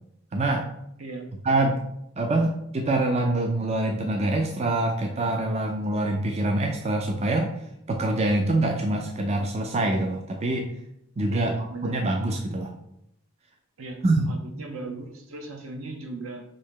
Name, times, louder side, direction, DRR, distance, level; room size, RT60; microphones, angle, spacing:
voice 1, 0.3-0.6 1.4-1.8 2.2-7.5 7.9-10.7 11.2-11.5 11.8-12.7 14.0-14.2, right 2 dB, 30° right, 2 dB, 0.4 m, -25 dB
voice 2, 1.0-1.3 11.3-12.0 13.8-14.0 14.3-16.4, right 3 dB, 75° right, 4 dB, 0.8 m, -38 dB
5.3 x 2.8 x 3.6 m, 0.77 s
head